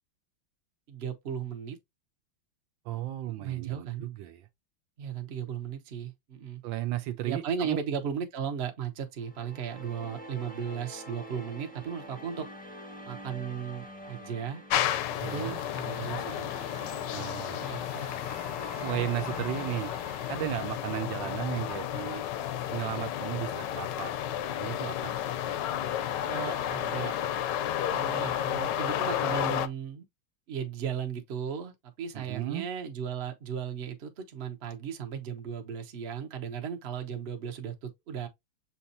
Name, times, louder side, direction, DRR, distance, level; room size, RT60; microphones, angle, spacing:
voice 1, 0.9-1.8 3.3-4.1 5.0-6.6 7.2-12.5 13.0-14.6 15.2-16.5 17.5-18.1 21.2-21.4 26.2-27.2 27.9-30.0 30.5-38.3, right 7 dB, 45° right, 0.8 m, -36 dB
voice 2, 2.8-4.5 6.6-7.8 15.2-15.6 17.1-17.7 18.8-19.9 20.3-22.2 22.7-24.2 24.6-25.2 32.1-32.7, right 13 dB, 75° right, 1.2 m, -35 dB
sound 1, 9.2-21.6, equal, 10° left, 0.5 m, -46 dB
sound 2, 14.7-29.7, left 11 dB, 75° left, 1.1 m, -32 dB
7.0 x 2.9 x 2.6 m
omnidirectional pair, 2.2 m